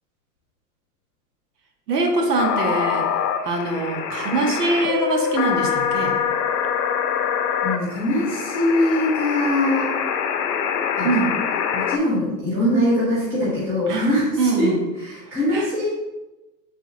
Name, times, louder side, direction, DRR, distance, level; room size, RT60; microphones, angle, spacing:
voice 1, 1.9-3.1 3.4-6.2 11.0-11.4 13.9-14.1 14.4-14.8 15.2-15.7, right 3 dB, 70° right, 1 dB, 1.1 m, -23 dB
sound 1, 2.4-12.0, left 7 dB, 80° left, 0.7 m, -24 dB
voice 2, 7.6-9.9 11.0-11.1 11.7-14.7 15.0-15.9, left 1 dB, 5° right, -11 dB, 0.7 m, -22 dB
4.6 x 3.6 x 3.2 m, 1.1 s
hypercardioid pair, 170°, 49 cm